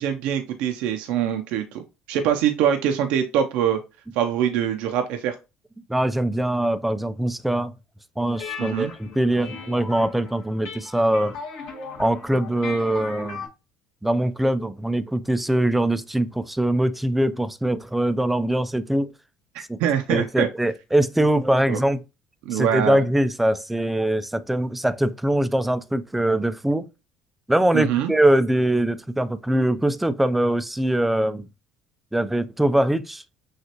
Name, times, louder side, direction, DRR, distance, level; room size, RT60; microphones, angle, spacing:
voice 1, 0.0-1.8 2.1-3.8 4.1-5.4 8.6-8.9 19.5-20.5 21.7-21.8 22.4-23.0 27.7-28.1, right 9 dB, 75° right, 0.6 m, -23 dB
voice 2, 5.9-7.7 8.2-11.4 12.0-13.4 14.0-19.1 19.7-19.8 20.1-22.0 22.5-26.9 27.5-31.5 32.1-33.2, right 1 dB, 5° right, 0.4 m, -22 dB
sound 1, 8.3-13.5, left 5 dB, 75° left, 2.0 m, -38 dB
6.2 x 2.4 x 2.9 m
supercardioid pair, 95°, 2 cm